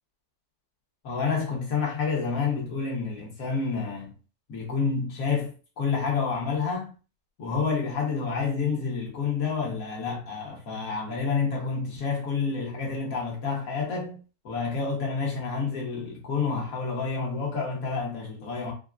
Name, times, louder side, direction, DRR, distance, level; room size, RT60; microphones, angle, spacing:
voice 1, 1.0-4.1 4.5-6.9 7.4-14.2 14.4-18.7, left 5 dB, 65° left, 1.5 m, -29 dB
4.1 x 2.1 x 2.4 m
omnidirectional pair, 1.6 m